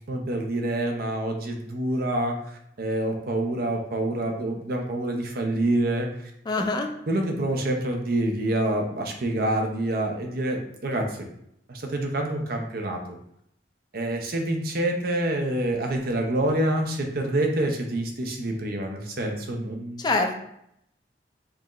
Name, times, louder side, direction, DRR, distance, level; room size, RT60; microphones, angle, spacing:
voice 1, 0.1-6.3 6.6-6.7 7.1-11.3 11.7-13.2 13.9-20.0, right 1 dB, 60° right, 3 dB, 0.6 m, -27 dB
voice 2, 6.5-6.9 20.0-20.4, left 2 dB, 25° left, 4 dB, 0.4 m, -25 dB
4.6 x 2.4 x 3.0 m, 0.77 s
head